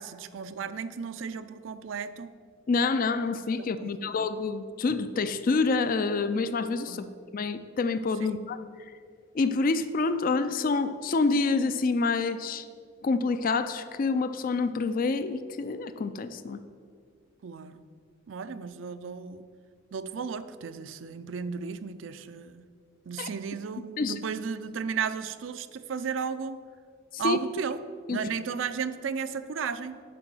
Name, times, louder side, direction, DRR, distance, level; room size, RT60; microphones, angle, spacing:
voice 1, 0.0-2.3 3.6-4.1 6.9-7.2 8.2-8.4 17.4-17.8 18.3-19.4 19.9-22.7 23.1-26.6 27.2-27.8 28.1-30.0, right 6 dB, 75° right, 12 dB, 0.4 m, -34 dB
voice 2, 2.7-7.1 7.3-8.6 9.3-12.7 13.0-16.6 23.2-23.3 24.0-24.2 27.1-27.4 28.1-28.2, left 4 dB, 45° left, 12 dB, 0.4 m, -27 dB
7.7 x 5.5 x 6.1 m, 2.1 s
head